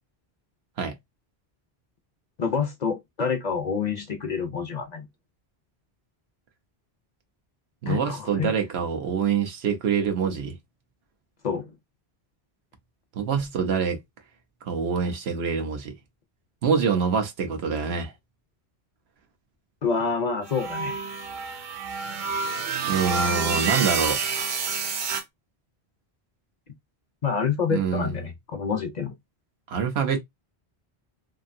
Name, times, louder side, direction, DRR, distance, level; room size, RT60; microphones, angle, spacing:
voice 1, 2.4-5.1 7.9-8.5 11.4-11.7 19.8-21.0 27.2-29.1, left 6 dB, 50° left, 0.6 m, -27 dB
voice 2, 7.8-10.5 13.1-14.0 14.6-15.9 16.6-18.1 22.9-24.2 27.7-28.3 29.7-30.2, right 6 dB, 80° right, 1.0 m, -25 dB
sound 1, 20.5-25.2, right 5 dB, 55° right, 0.7 m, -28 dB
2.8 x 2.5 x 2.5 m
omnidirectional pair, 1.1 m